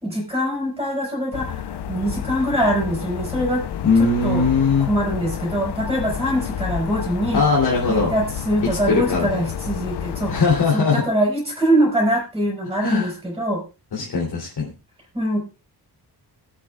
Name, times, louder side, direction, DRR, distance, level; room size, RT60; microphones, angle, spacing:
voice 1, 0.0-3.7 4.0-4.4 4.8-7.4 7.9-10.4 10.7-13.6 15.1-15.4, right 1 dB, 10° right, -1 dB, 4.6 m, -23 dB
sound 1, 1.3-10.6, left 9 dB, 90° left, 0.8 m, -30 dB
voice 2, 3.8-4.9 7.3-8.1 8.6-9.5 10.3-11.0 12.8-13.1 13.9-14.7, left 4 dB, 70° left, -4 dB, 3.3 m, -20 dB
21.5 x 8.4 x 2.4 m, 0.29 s
wide cardioid pair, 170°, 40 cm